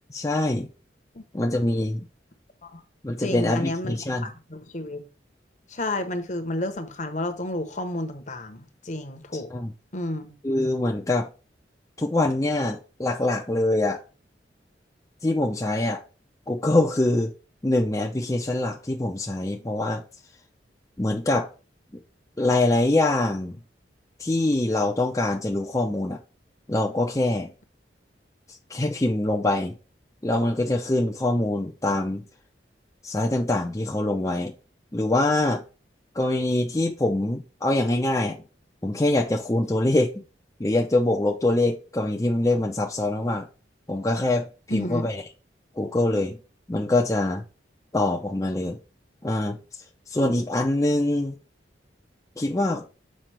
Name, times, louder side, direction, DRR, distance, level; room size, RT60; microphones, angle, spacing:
voice 1, 0.1-0.7 1.3-2.1 3.0-4.3 9.3-9.7 10.4-11.3 12.0-14.0 15.2-16.0 16.5-17.3 17.6-20.0 21.0-21.5 22.4-23.6 24.2-26.2 26.7-27.5 28.7-29.8 30.2-32.2 33.0-34.5 34.9-35.6 36.1-38.4 38.8-40.2 40.6-43.5 43.9-45.2 45.8-46.4 46.7-47.5 47.9-48.8 49.2-49.6 50.1-51.4 52.4-52.9, left 2 dB, 20° left, 0.6 m, -24 dB
voice 2, 3.2-5.0 5.7-9.5 9.9-10.3 44.7-45.0, left 1 dB, 40° left, 0.9 m, -31 dB
7.5 x 5.1 x 3.3 m
head